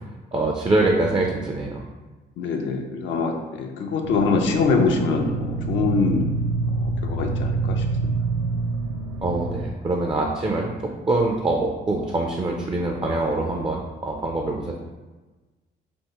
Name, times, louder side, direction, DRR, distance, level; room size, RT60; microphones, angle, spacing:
voice 1, 0.3-1.8 9.2-14.7, right 2 dB, 20° right, 1 dB, 0.4 m, -24 dB
voice 2, 2.4-6.2 6.8-7.8, left 4 dB, 70° left, 2 dB, 0.5 m, -24 dB
sound 1, 4.0-9.6, right 3 dB, 85° right, 0.6 m, -26 dB
3.5 x 2.4 x 2.9 m, 1.2 s
supercardioid pair, 70°, 20 cm